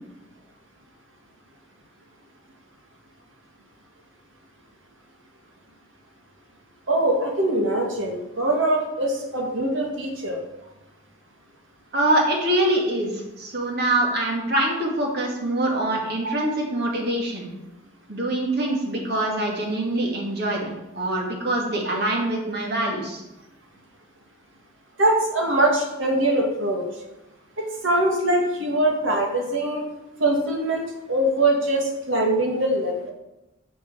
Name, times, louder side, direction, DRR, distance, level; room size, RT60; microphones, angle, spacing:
voice 1, 6.9-10.4 16.2-16.3 25.0-26.8 27.6-29.8 30.2-33.1, right 1 dB, 70° right, 1 dB, 2.0 m, -23 dB
voice 2, 11.9-17.5 18.1-23.2, right 1 dB, 55° right, 0 dB, 2.3 m, -24 dB
7.6 x 6.9 x 6.9 m, 0.97 s
head